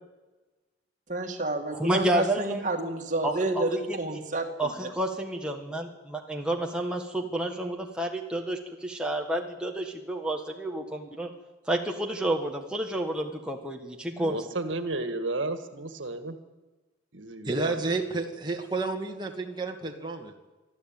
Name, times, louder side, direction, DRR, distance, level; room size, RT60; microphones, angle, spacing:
voice 1, 1.1-4.9, right 2 dB, 40° right, 3 dB, 2.5 m, -30 dB
voice 2, 1.7-2.7 3.2-4.0 4.6-11.3 11.7-14.4, right 1 dB, 5° right, 1 dB, 1.5 m, -30 dB
voice 3, 14.2-16.4 17.1-17.7, right 2 dB, 80° right, 9 dB, 1.8 m, -32 dB
voice 4, 17.4-20.3, right 3 dB, 20° right, 2 dB, 2.1 m, -31 dB
25.0 x 13.0 x 9.0 m, 1.2 s
head